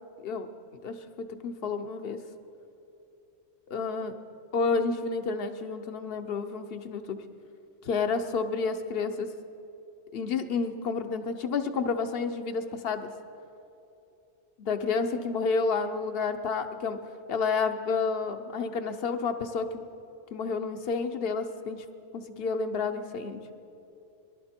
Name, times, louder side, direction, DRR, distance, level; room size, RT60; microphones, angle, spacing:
voice 1, 0.8-2.2 3.7-4.2 4.5-7.2 7.8-9.3 10.1-13.1 14.6-17.0 17.3-19.8 20.3-21.8 22.1-23.4, left 4 dB, 60° left, 9 dB, 1.0 m, -30 dB
23.0 x 12.0 x 4.4 m, 2.8 s
omnidirectional pair, 1.2 m